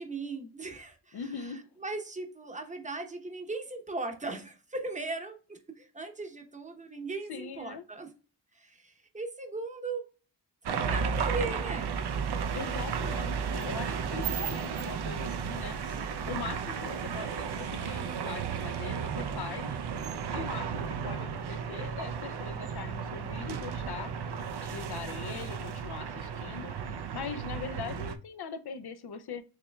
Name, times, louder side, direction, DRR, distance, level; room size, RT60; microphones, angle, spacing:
voice 1, 0.0-8.1 8.5-10.1 10.7-12.0, right 3 dB, 20° right, 0.8 m, -38 dB
voice 2, 1.1-1.7 7.3-7.8 12.5-15.8 16.3-19.8 20.3-24.1 24.6-29.4, left 6 dB, 65° left, 0.6 m, -41 dB
sound 1, 10.7-28.2, right 6 dB, 70° right, 0.6 m, -34 dB
sound 2, 12.1-18.0, right 3 dB, 90° right, 1.3 m, -49 dB
6.6 x 3.1 x 2.2 m
wide cardioid pair, 150°, 41 cm